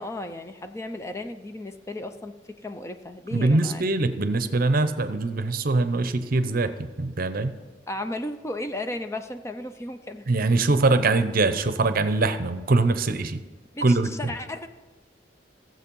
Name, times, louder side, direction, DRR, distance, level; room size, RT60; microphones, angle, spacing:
voice 1, 0.0-3.9 7.9-10.2 13.7-14.7, left 1 dB, 15° left, 7 dB, 0.5 m, -35 dB
voice 2, 3.3-7.5 10.3-13.4 13.8-14.1, right 3 dB, 50° right, 11 dB, 0.7 m, -23 dB
15.5 x 7.7 x 5.4 m, 1.3 s
head